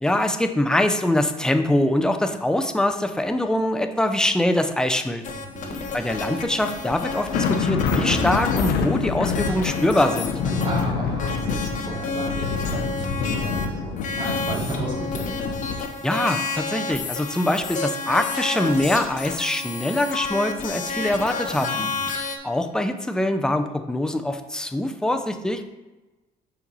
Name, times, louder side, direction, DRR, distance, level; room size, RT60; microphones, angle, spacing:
voice 1, 0.0-5.2 5.9-10.3 16.0-21.9 22.4-25.6, left 1 dB, 5° left, 7 dB, 0.6 m, -23 dB
sound 1, 5.2-10.8 11.2-13.7 14.0-22.4, left 4 dB, 50° left, 1.1 m, -31 dB
voice 2, 5.3-5.8 10.4-15.3 21.5-22.0, right 2 dB, 30° right, -4 dB, 2.7 m, -34 dB
sound 2, 6.6-6.8 7.0-15.8, left 5 dB, 90° left, 0.9 m, -27 dB
8.8 x 4.5 x 4.1 m, 1.1 s
cardioid pair, 110°, 17 cm